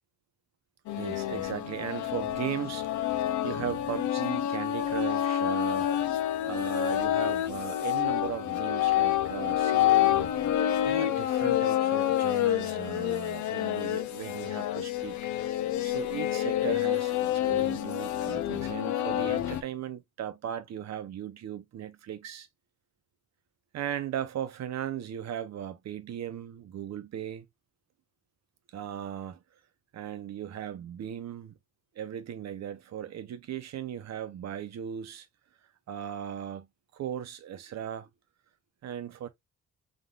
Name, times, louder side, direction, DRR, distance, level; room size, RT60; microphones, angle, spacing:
sound 1, 0.9-19.6, left 12 dB, 70° left, 0.7 m, -28 dB
voice 1, 1.0-5.9 6.5-10.3 10.8-15.2 15.8-22.5 23.7-27.5 28.7-29.4 29.9-31.5 31.9-35.3 35.9-36.7 36.9-38.1 38.8-39.3, right 10 dB, 60° right, 0.8 m, -37 dB
3.7 x 3.7 x 2.4 m
cardioid pair, 90°, 30 cm